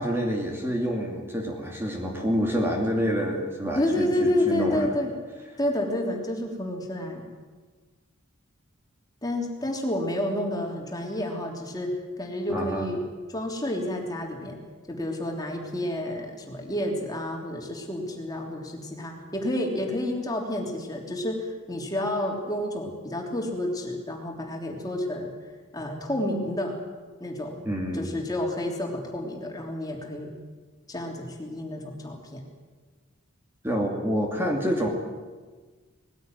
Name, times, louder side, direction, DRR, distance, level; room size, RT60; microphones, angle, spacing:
voice 1, 0.0-4.9 12.5-12.9 27.6-28.2 33.6-34.9, equal, 10° right, 0 dB, 2.4 m, -27 dB
voice 2, 3.7-5.1 5.6-7.2 9.2-11.9 12.2-13.0 13.3-14.6 14.9-25.4 25.7-26.7 27.2-27.6 27.9-30.3 30.9-32.4, left 1 dB, 20° left, 0 dB, 3.3 m, -29 dB
20.5 x 16.0 x 9.2 m, 1.4 s
head